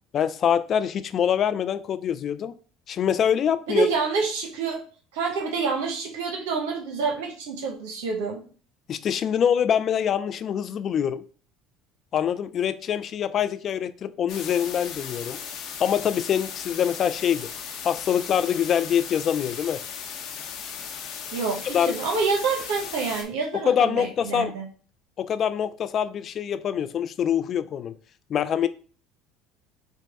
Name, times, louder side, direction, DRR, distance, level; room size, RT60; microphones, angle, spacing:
voice 1, 0.1-2.5 2.9-3.9 8.9-11.2 12.1-15.4 15.8-17.5 17.8-19.8 21.7-22.0 23.7-24.5 25.2-27.9 28.3-28.7, left 8 dB, 45° left, 0.4 m, -24 dB
voice 2, 3.7-4.8 5.1-8.4 21.3-24.7, right 4 dB, 80° right, 0.8 m, -27 dB
sound 1, 14.3-23.2, left 7 dB, 60° left, 0.9 m, -37 dB
6.1 x 2.2 x 4.0 m
supercardioid pair, 85°, 0 cm